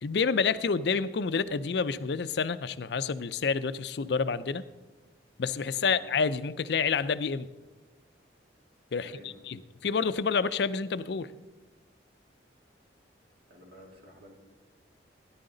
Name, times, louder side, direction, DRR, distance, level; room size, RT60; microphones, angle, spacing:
voice 1, 0.0-4.6 5.4-7.5 8.9-9.1 9.5-11.3, left 5 dB, 60° left, 14 dB, 0.4 m, -28 dB
voice 2, 5.7-6.0 9.0-9.5 13.5-14.3, equal, 50° right, 0 dB, 2.7 m, -51 dB
17.0 x 10.5 x 3.9 m, 1.2 s
head